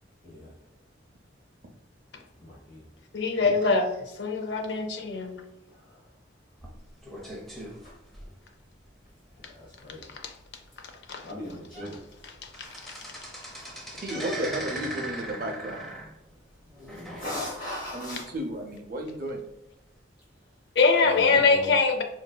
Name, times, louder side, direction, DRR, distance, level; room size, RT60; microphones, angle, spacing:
voice 1, 2.4-2.8 9.6-10.0 11.2-12.0 13.6-13.7 14.1-14.9 17.2-18.2 21.0-21.7, left 1 dB, 45° left, -6 dB, 0.9 m, -38 dB
voice 2, 3.1-3.9 4.2-5.4 10.2-10.3 11.1-11.2 12.6-13.0 20.8-22.0, left 4 dB, 60° left, 5 dB, 0.4 m, -23 dB
sound 1, 6.6-8.8 9.3-9.5 9.8-9.9 10.4-10.5 11.2-11.3 11.6-12.0 12.2-17.8 18.1-18.2 19.0-19.1, right 1 dB, ahead, 0.5 m, -39 dB
voice 3, 14.0-15.8 17.9-19.4, right 1 dB, 50° right, 2 dB, 0.5 m, -33 dB
3.9 x 2.5 x 2.2 m, 0.87 s
head